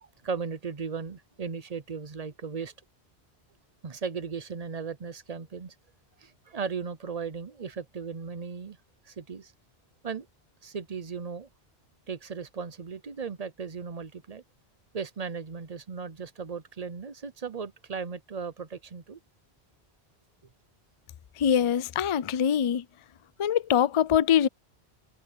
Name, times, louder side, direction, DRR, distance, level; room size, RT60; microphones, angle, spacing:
voice 1, 0.0-2.7 3.8-5.7 6.2-8.8 9.1-9.5 10.0-10.3 10.6-11.5 12.1-14.4 14.9-19.2, right 5 dB, 40° right, 0.8 m, -36 dB
voice 2, 21.4-22.8 23.4-24.5, left 9 dB, 50° left, 0.4 m, -23 dB
omnidirectional pair, 1.1 m